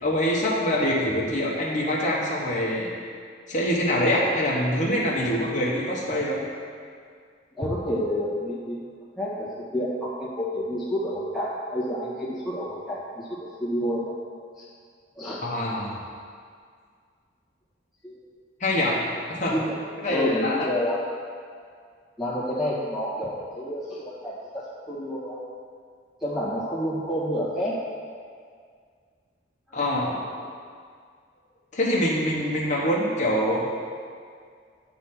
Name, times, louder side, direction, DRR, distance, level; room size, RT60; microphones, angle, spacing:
voice 1, 0.0-2.9 3.5-6.4 15.4-16.0 18.6-19.0 19.4-19.5 20.0-20.7 29.7-30.2 31.7-33.6, left 1 dB, 40° left, -5 dB, 1.0 m, -24 dB
voice 2, 7.6-8.8 9.2-9.5 9.7-14.1 14.6-14.7 15.2-15.4 18.0-18.2 18.9-19.8 20.1-21.1 22.2-25.4 26.2-27.7 29.7-29.8, equal, ahead, -9 dB, 1.6 m, -29 dB
9.0 x 3.3 x 5.8 m, 2.1 s
head